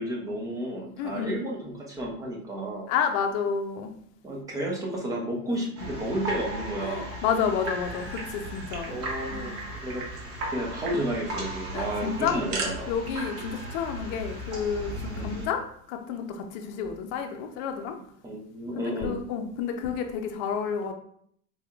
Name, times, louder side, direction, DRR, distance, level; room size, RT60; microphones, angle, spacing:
voice 1, 0.0-2.9 4.2-7.1 8.9-10.0 10.5-12.9 15.1-15.3 18.2-19.2, right 1 dB, 10° right, -1 dB, 0.3 m, -32 dB
voice 2, 1.0-1.4 2.9-3.9 6.8-9.0 9.3-9.5 11.7-12.4 12.9-15.6 15.9-18.0 18.7-20.9, left 7 dB, 50° left, 5 dB, 0.6 m, -30 dB
sound 1, 5.8-15.5, right 1 dB, 30° right, 1.1 m, -36 dB
sound 2, 7.9-8.9 9.2-9.3 9.6-10.1 10.4-10.5 10.8-11.0 12.0-12.7, right 3 dB, 65° right, 1.2 m, -37 dB
4.2 x 3.4 x 2.3 m, 0.63 s
supercardioid pair, 130°, 44 cm